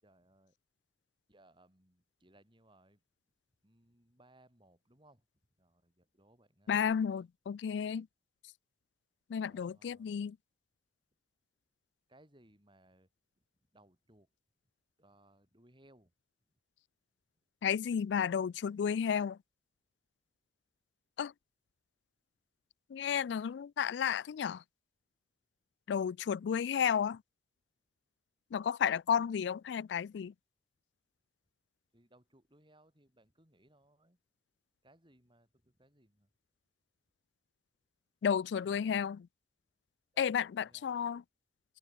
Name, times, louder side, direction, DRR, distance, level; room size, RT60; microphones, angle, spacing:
voice 1, 0.0-0.5 1.3-3.0 3.6-5.2 5.6-7.2 9.4-10.1 12.1-13.1 13.7-14.3 15.0-16.1 31.9-34.2 34.8-36.3 38.2-38.9 40.1-41.0, right 1 dB, 25° right, 6.7 m, -65 dB
voice 2, 6.7-8.1 9.3-10.4 17.6-19.4 21.2-21.3 22.9-24.6 25.9-27.2 28.5-30.3 38.2-39.2 40.2-41.2, left 7 dB, 70° left, 0.3 m, -32 dB
open air
head